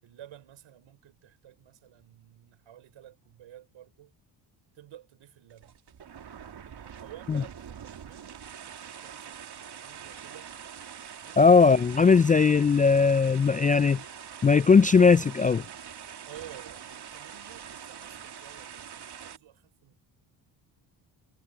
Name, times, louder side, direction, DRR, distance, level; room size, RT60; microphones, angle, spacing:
voice 1, 0.0-4.1 4.7-5.8 6.6-10.5 11.2-11.4 16.3-20.1, right 12 dB, 70° right, 5.4 m, -51 dB
sound 1, 5.5-19.4, right 8 dB, 50° right, 2.9 m, -44 dB
voice 2, 11.4-14.0 14.4-15.6, left 5 dB, 20° left, 0.3 m, -19 dB
supercardioid pair, 65°, 49 cm